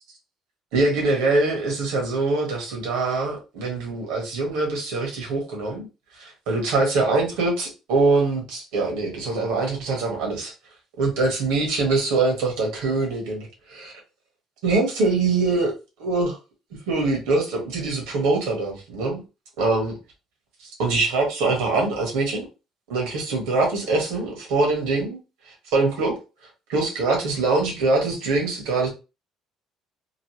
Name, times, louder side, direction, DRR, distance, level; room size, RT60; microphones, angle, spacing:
voice 1, 0.7-5.9 6.1-10.5 11.0-13.9 14.6-15.7 16.0-16.4 16.7-19.2 19.6-19.9 20.6-22.4 22.9-25.2 25.5-26.2 26.7-28.9, right 3 dB, 85° right, 0 dB, 1.3 m, -23 dB
3.1 x 2.3 x 3.0 m, 0.30 s
supercardioid pair, 80°, 0 cm